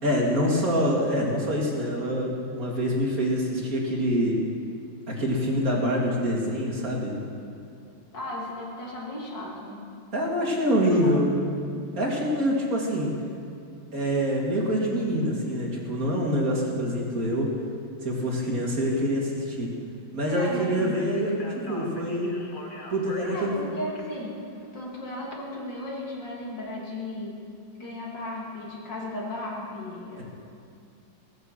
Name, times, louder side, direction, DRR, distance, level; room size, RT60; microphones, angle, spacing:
voice 1, 0.0-4.4 5.1-7.2 10.1-11.3 12.0-13.2 13.9-17.6 18.0-19.7 20.1-22.4 22.9-23.6, equal, 45° right, -3 dB, 2.8 m, -25 dB
voice 2, 8.1-9.9 10.9-11.2 20.3-21.0 23.3-24.4 24.7-27.4 27.8-30.2, left 1 dB, 65° left, -4 dB, 3.3 m, -35 dB
Speech, 20.8-25.3, left 2 dB, 30° left, 1.4 m, -44 dB
17.0 x 9.4 x 7.4 m, 2.4 s
omnidirectional pair, 2.1 m